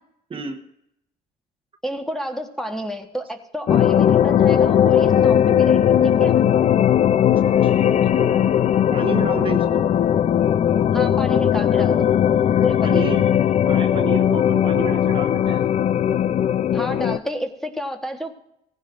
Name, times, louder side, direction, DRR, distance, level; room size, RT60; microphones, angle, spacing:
voice 1, 0.3-0.6 7.4-8.6 8.9-9.8 12.8-13.2 13.6-15.7, right 5 dB, 30° right, 4 dB, 1.1 m, -30 dB
voice 2, 1.8-6.3 10.9-12.1 12.6-13.1 16.7-18.5, equal, ahead, 4 dB, 1.3 m, -30 dB
sound 1, 3.7-17.2, left 9 dB, 40° left, 0.5 m, -18 dB
18.0 x 15.0 x 2.5 m, 0.79 s
cardioid pair, 110°, 17 cm